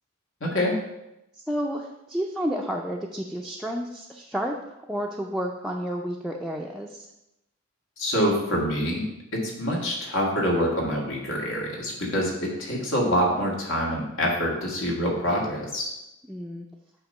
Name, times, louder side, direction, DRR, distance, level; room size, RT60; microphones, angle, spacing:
voice 1, 0.4-0.8 8.0-9.0 9.3-15.9, equal, 80° left, -3 dB, 1.9 m, -26 dB
voice 2, 1.4-7.1 16.3-16.7, equal, ahead, -1 dB, 0.4 m, -31 dB
8.7 x 2.9 x 5.4 m, 0.89 s
head